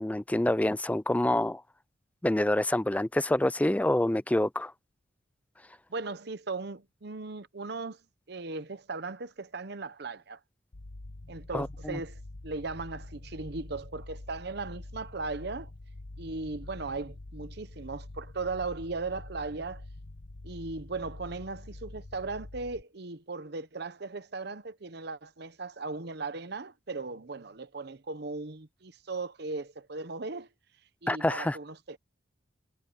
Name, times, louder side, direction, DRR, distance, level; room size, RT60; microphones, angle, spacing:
voice 1, 0.0-1.6 2.2-4.7 11.5-12.0 31.1-31.6, left 1 dB, 10° left, 0.4 m, -27 dB
voice 2, 5.9-8.0 8.3-10.4 11.3-15.7 16.2-19.8 20.4-30.5 31.0-32.0, right 3 dB, 60° right, 0.9 m, -37 dB
sound 1, 10.7-22.8, left 2 dB, 75° left, 1.1 m, -46 dB
head